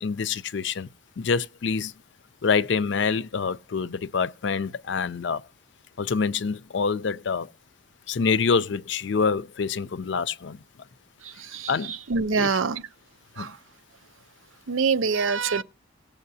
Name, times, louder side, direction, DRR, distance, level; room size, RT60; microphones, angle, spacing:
voice 1, 0.0-0.9 1.2-1.9 2.4-5.4 6.0-7.5 8.1-10.6 11.7-12.0 12.3-12.6 13.4-13.5, left 5 dB, 60° left, 0.5 m, -26 dB
voice 2, 12.1-12.8 13.4-13.5 14.7-15.6, right 5 dB, 85° right, 0.6 m, -24 dB
18.0 x 7.2 x 2.7 m
head